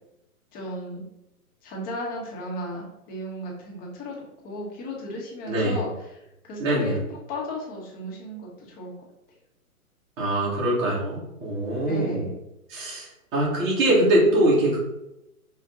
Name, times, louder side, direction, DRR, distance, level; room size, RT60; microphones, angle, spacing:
voice 1, 0.5-1.0 1.6-4.2 4.4-8.9 11.9-12.4 13.9-14.3, left 1 dB, 20° left, -2 dB, 1.1 m, -35 dB
voice 2, 5.5-5.8 6.6-7.0 10.2-12.3 12.7-14.8, right 1 dB, 25° right, -5 dB, 1.7 m, -23 dB
5.5 x 2.5 x 3.8 m, 0.88 s
hypercardioid pair, 135°, 45 cm